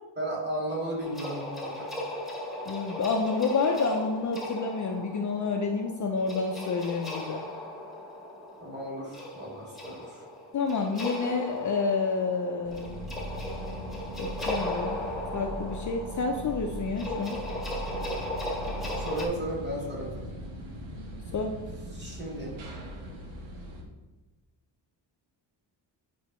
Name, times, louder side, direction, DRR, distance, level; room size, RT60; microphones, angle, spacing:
voice 1, 0.2-1.9 8.6-10.3 19.0-20.2 21.9-22.6, right 1 dB, 25° right, -5 dB, 2.1 m, -35 dB
sound 1, 1.0-19.3, left 1 dB, ahead, 1.1 m, -37 dB
voice 2, 2.7-7.4 10.5-13.1 14.2-15.0 15.3-17.4 21.3-21.6, left 4 dB, 40° left, 3 dB, 0.5 m, -29 dB
sound 2, 12.6-23.8, equal, 85° right, 1.4 m, -39 dB
8.6 x 5.1 x 3.0 m, 1.2 s
wide cardioid pair, 155°, 46 cm